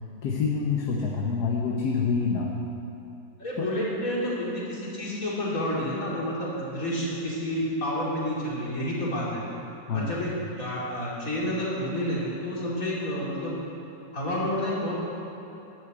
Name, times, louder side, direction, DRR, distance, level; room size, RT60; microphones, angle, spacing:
voice 1, 0.2-2.5 3.6-3.7 9.9-10.1, left 5 dB, 70° left, -1 dB, 1.5 m, -26 dB
voice 2, 3.4-9.4 9.9-13.5 14.1-14.9, equal, 55° left, -6 dB, 3.3 m, -29 dB
11.5 x 7.9 x 8.0 m, 3.0 s
omnidirectional pair, 1.8 m